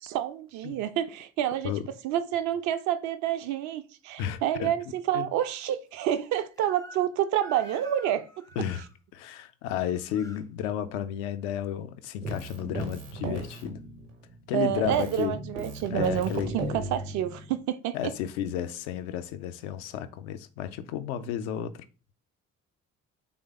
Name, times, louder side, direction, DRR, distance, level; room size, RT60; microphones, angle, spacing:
voice 1, 0.0-1.7 2.0-8.2 14.5-18.1, right 11 dB, 50° right, 0.4 m, -28 dB
voice 2, 4.2-4.7 5.1-5.3 8.6-8.8 9.1-13.8 14.5-15.4 15.9-16.6 17.9-21.8, left 10 dB, 65° left, 0.5 m, -32 dB
Crying sobbing / Screech, 6.6-7.1 7.4-8.9 9.7-10.4, equal, 10° left, 0.4 m, -48 dB
Keyboard (musical), 12.2-14.5 14.8-17.6, right 2 dB, 70° right, 0.9 m, -36 dB
3.2 x 2.1 x 3.5 m
figure-of-eight pair, 45°, 36 cm